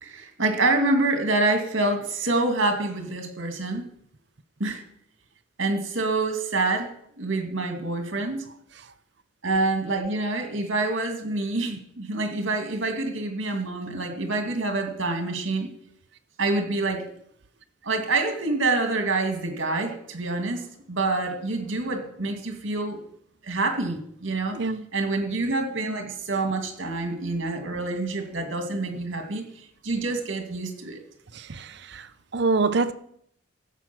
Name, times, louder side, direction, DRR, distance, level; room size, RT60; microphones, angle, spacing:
voice 1, 0.0-3.9 4.6-4.8 5.6-8.4 9.4-15.7 16.4-17.1 17.8-23.0 23.4-24.6 24.9-31.0, right 2 dB, 75° right, 5 dB, 2.3 m, -27 dB
voice 2, 31.3-32.9, right 3 dB, 55° right, 12 dB, 0.7 m, -26 dB
15.0 x 7.6 x 6.0 m, 0.70 s
head